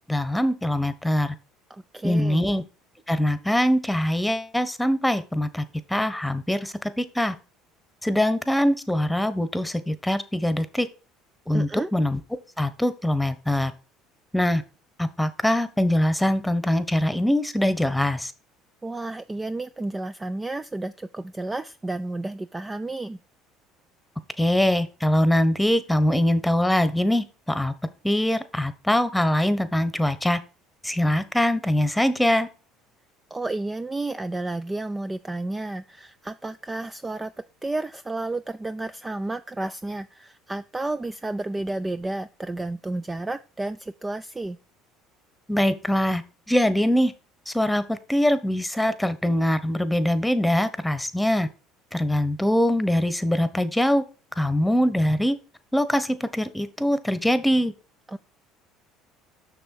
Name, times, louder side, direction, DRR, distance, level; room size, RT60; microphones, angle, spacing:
voice 1, 0.1-1.3 2.0-2.6 3.1-5.6 5.9-7.3 8.0-10.9 11.5-12.2 12.6-13.7 14.3-14.6 15.0-18.3 24.4-27.7 28.0-30.4 30.8-32.5 45.5-46.2 46.5-47.1 47.5-51.5 51.9-54.0 54.4-55.4 55.7-57.7, left 1 dB, 5° left, 13 dB, 1.2 m, -23 dB
voice 2, 1.7-2.4 11.5-11.9 18.8-23.2 33.3-37.3 37.6-44.6 58.1-58.2, right 2 dB, 15° right, 12 dB, 0.4 m, -31 dB
6.8 x 6.2 x 4.7 m, 0.34 s
hypercardioid pair, 70°, 0 cm